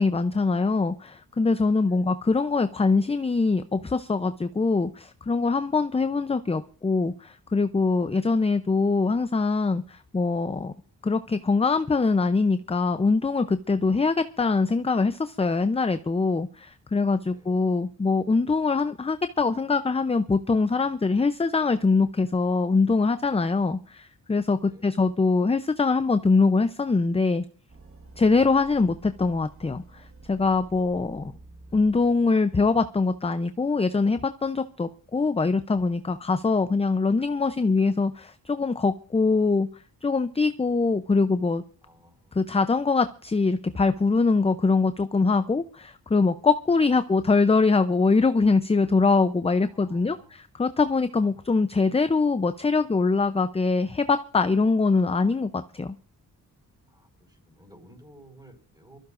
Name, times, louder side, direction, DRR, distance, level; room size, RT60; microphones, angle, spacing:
voice 1, 0.0-10.7 11.0-27.4 28.2-31.3 31.7-39.7 40.0-41.6 42.3-56.0, left 4 dB, 15° left, 11 dB, 0.6 m, -23 dB
voice 2, 1.8-2.1 17.3-17.6 24.5-24.9 31.2-31.8 41.8-42.5 47.1-47.2 49.6-50.5 51.3-51.8 56.9-59.0, right 1 dB, 10° right, 4 dB, 5.4 m, -55 dB
sound 1, 27.7-32.6, right 3 dB, 35° right, 1.6 m, -49 dB
24.5 x 14.5 x 2.5 m, 0.40 s
cardioid pair, 80°, 36 cm